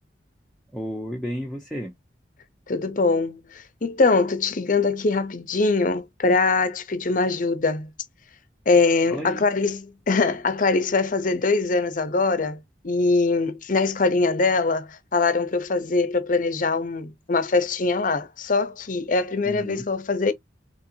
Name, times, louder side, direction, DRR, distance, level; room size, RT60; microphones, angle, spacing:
voice 1, 0.7-1.9 9.1-9.5 19.4-19.9, equal, ahead, 0.8 m, -32 dB
voice 2, 2.7-3.4 3.8-7.9 8.7-20.3, left 3 dB, 45° left, 0.7 m, -22 dB
4.3 x 3.1 x 2.7 m
head